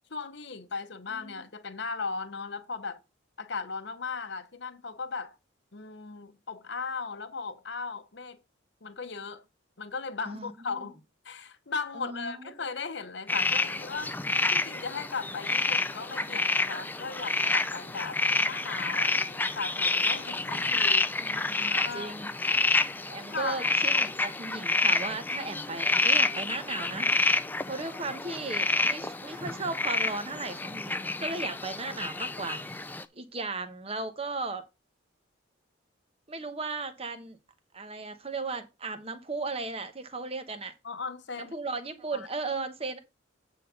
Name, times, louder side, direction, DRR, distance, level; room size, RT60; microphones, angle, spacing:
voice 1, 0.1-3.0 3.4-5.4 5.7-8.4 8.8-9.4 9.8-11.0 11.2-14.1 14.5-21.1 21.7-22.1 23.3-23.6 40.8-41.5 42.1-42.3, left 4 dB, 55° left, 0.9 m, -37 dB
voice 2, 1.1-1.4 10.3-10.8 11.9-12.5 15.7-15.8 16.2-16.4 21.2-22.3 23.0-27.1 27.7-34.6 36.3-37.4 37.7-40.7 41.4-43.0, right 3 dB, 30° right, 1.0 m, -36 dB
sound 1, 13.3-33.0, left 3 dB, 10° left, 0.4 m, -28 dB
9.1 x 4.0 x 5.7 m
head